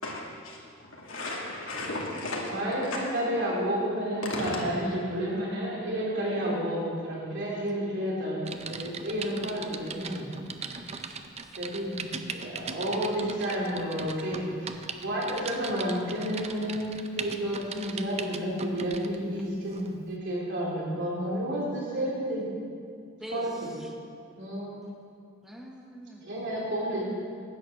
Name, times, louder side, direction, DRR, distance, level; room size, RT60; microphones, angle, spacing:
voice 1, 0.0-2.5 2.8-3.0 4.2-5.0, left 1 dB, 85° left, -3 dB, 2.4 m, -35 dB
voice 2, 2.5-10.3 10.7-11.0 11.6-12.0 12.3-14.8 15.0-22.5 23.3-23.5 24.4-24.8 26.2-27.0, equal, 60° right, -5 dB, 3.5 m, -31 dB
Typing, 8.4-19.2 19.7-19.9, right 5 dB, 30° right, 0.6 m, -40 dB
voice 3, 11.0-11.5 23.2-23.9 25.4-26.2, equal, ahead, 0 dB, 1.0 m, -44 dB
11.0 x 8.9 x 6.6 m, 2.3 s
head